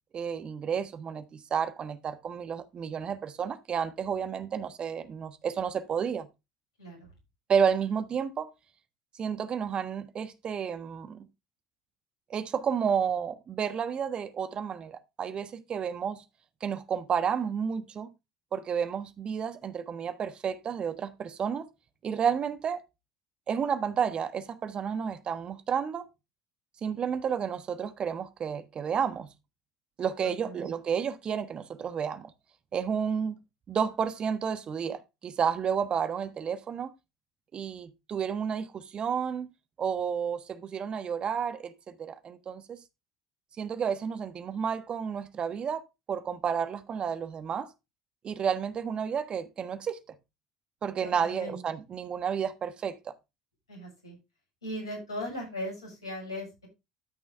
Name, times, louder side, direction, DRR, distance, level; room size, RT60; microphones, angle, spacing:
voice 1, 0.1-6.3 7.5-8.5 9.2-11.3 12.3-16.2 16.6-18.1 18.5-21.7 22.0-22.8 23.5-26.1 26.8-29.3 30.0-32.3 32.7-33.3 33.7-36.9 37.5-39.5 39.8-42.8 43.6-45.8 46.1-47.7 48.2-50.0 50.8-53.1, right 7 dB, 40° right, 1.3 m, -31 dB
voice 2, 6.8-7.1 30.2-30.7 51.0-51.6 53.7-54.2 54.6-56.7, left 1 dB, 85° left, 6.9 m, -38 dB
13.5 x 6.2 x 3.4 m
figure-of-eight pair, 65°, 3 cm